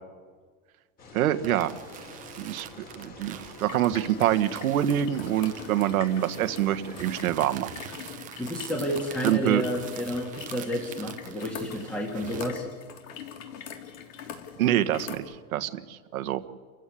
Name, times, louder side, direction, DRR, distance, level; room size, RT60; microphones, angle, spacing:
sound 1, 1.0-7.2, left 3 dB, 20° left, 3.4 m, -47 dB
voice 1, 1.1-1.7 2.4-2.7 2.9-7.7 9.2-9.6 14.6-16.5, right 12 dB, 90° right, 10 dB, 1.6 m, -26 dB
sound 2, 1.4-12.5, right 11 dB, 20° right, 0.9 m, -45 dB
sound 3, 3.6-15.2, left 8 dB, 65° left, 3.6 m, -43 dB
voice 2, 8.4-12.6, equal, 5° left, 1 dB, 1.8 m, -30 dB
29.5 x 15.5 x 8.5 m, 1.5 s
supercardioid pair, 170°, 41 cm